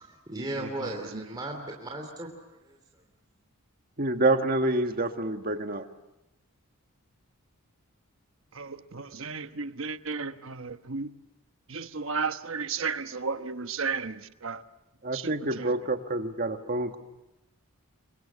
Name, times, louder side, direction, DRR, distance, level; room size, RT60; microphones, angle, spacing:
voice 1, 0.0-2.8, right 1 dB, 20° right, 3.0 m, -37 dB
voice 2, 4.0-5.9 15.0-17.0, right 2 dB, 40° right, 1.8 m, -27 dB
voice 3, 8.6-11.1 11.7-14.6 15.1-15.4, right 5 dB, 60° right, 1.1 m, -33 dB
29.0 x 25.0 x 7.3 m
head